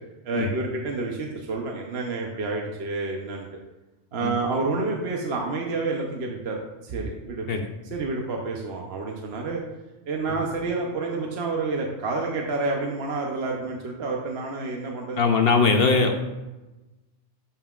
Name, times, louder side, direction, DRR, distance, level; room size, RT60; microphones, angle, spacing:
voice 1, 0.2-3.5 4.1-7.5 7.8-9.6 10.1-15.2, right 3 dB, 60° right, 0 dB, 1.0 m, -29 dB
voice 2, 15.2-16.2, left 4 dB, 60° left, 5 dB, 0.8 m, -20 dB
11.0 x 5.5 x 2.4 m, 1.1 s
omnidirectional pair, 1.3 m